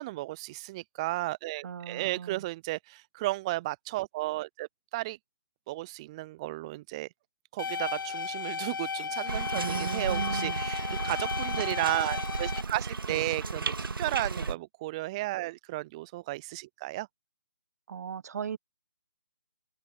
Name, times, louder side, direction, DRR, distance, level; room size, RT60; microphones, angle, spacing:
voice 1, 0.0-5.2 5.7-7.1 7.5-13.7 14.0-17.1, right 19 dB, 15° right, 0.3 m, -34 dB
voice 2, 1.6-2.4 9.5-10.6 13.1-13.2 14.4-14.5 17.9-18.6, right 7 dB, 45° right, 1.0 m, -37 dB
sound 1, 7.6-12.6, left 5 dB, 65° left, 0.5 m, -34 dB
sound 2, 9.3-14.5, right 4 dB, 70° right, 1.9 m, -34 dB
open air
figure-of-eight pair, 145°, 12 cm